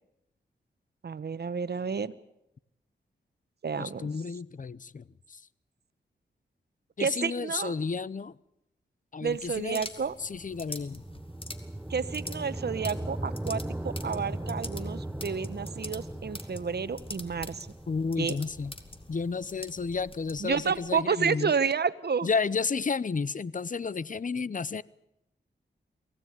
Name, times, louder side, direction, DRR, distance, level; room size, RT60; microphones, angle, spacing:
voice 1, 1.0-2.1 3.6-4.1 7.0-7.7 9.2-10.1 11.9-17.7 18.2-18.4 20.4-22.3, right 6 dB, 60° right, 1.2 m, -30 dB
voice 2, 3.8-5.4 7.0-8.3 9.1-9.9 10.2-11.0 17.9-18.7 19.1-21.5 22.2-24.8, left 5 dB, 45° left, 0.8 m, -32 dB
sound 1, 9.3-21.0, left 2 dB, 30° left, 2.4 m, -46 dB
sound 2, 9.9-20.2, right 1 dB, 5° right, 1.0 m, -39 dB
23.5 x 17.0 x 9.7 m
cardioid pair, 55°, 19 cm